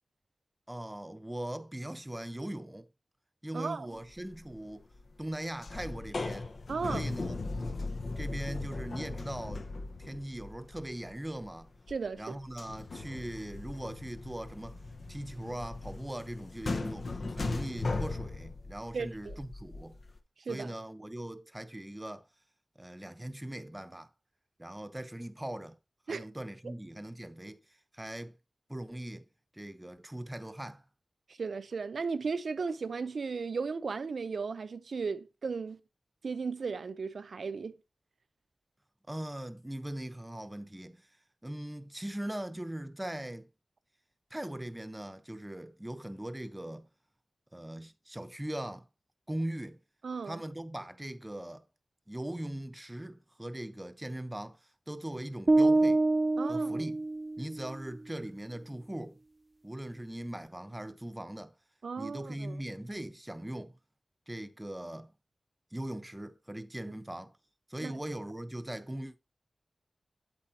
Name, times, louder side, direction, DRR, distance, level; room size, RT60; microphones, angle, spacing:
voice 1, 0.7-2.9 3.4-4.8 5.2-6.5 6.9-7.4 8.2-9.6 10.0-11.7 12.2-14.8 15.1-20.0 20.5-22.2 22.8-24.1 24.6-25.8 26.1-27.6 27.9-28.4 28.7-29.3 29.5-30.8 39.1-41.0 41.4-43.5 44.3-46.9 47.5-48.9 49.3-49.8 50.3-51.7 52.1-54.6 54.9-56.0 56.5-57.0 57.4-59.2 59.6-61.5 62.0-63.8 64.3-65.1 65.7-67.3 67.7-69.1, right 1 dB, 15° right, 0.9 m, -40 dB
voice 2, 3.5-3.9 6.7-7.1 11.9-12.4 18.9-19.4 20.4-20.7 26.1-26.3 26.6-26.7 31.3-35.8 36.2-37.8 50.0-50.4 56.4-56.9 61.8-62.6 67.8-67.9, right 4 dB, 80° right, 0.7 m, -35 dB
sound 1, 4.2-4.5 4.8-5.4 5.6-12.2 12.5-20.2, left 3 dB, 60° left, 1.0 m, -38 dB
sound 2, 55.5-57.7, right 2 dB, 35° right, 0.4 m, -26 dB
8.4 x 8.2 x 2.8 m
wide cardioid pair, 95°, 0 cm